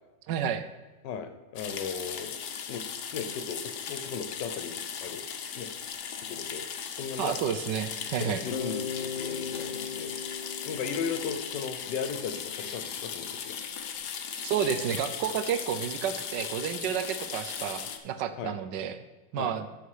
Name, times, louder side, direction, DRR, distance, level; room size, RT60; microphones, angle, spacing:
voice 1, 0.3-0.7 7.2-8.4 14.4-19.0 19.3-19.7, right 8 dB, 90° right, 11 dB, 1.3 m, -30 dB
voice 2, 1.0-2.4 2.7-2.9 3.1-5.2 5.5-5.7 6.2-6.7 7.0-7.3 8.2-10.1 10.6-13.6 18.4-18.5 19.4-19.5, left 6 dB, 90° left, 9 dB, 1.5 m, -36 dB
sound 1, 1.6-18.0, left 7 dB, 75° left, 1.4 m, -38 dB
Bass guitar, 8.5-12.5, left 6 dB, 55° left, 1.0 m, -38 dB
13.0 x 4.5 x 4.8 m, 1.2 s
omnidirectional pair, 1.8 m